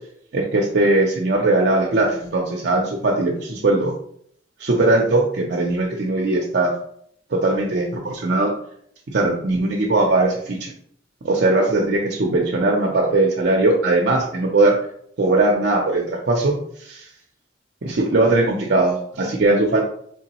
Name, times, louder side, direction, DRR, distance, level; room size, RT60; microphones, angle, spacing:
voice 1, 0.3-3.9 4.6-6.7 7.3-8.5 9.1-10.7 11.2-14.8 15.2-17.1 17.8-19.8, right 2 dB, 65° right, -1 dB, 0.5 m, -19 dB
3.7 x 3.3 x 2.9 m, 0.66 s
head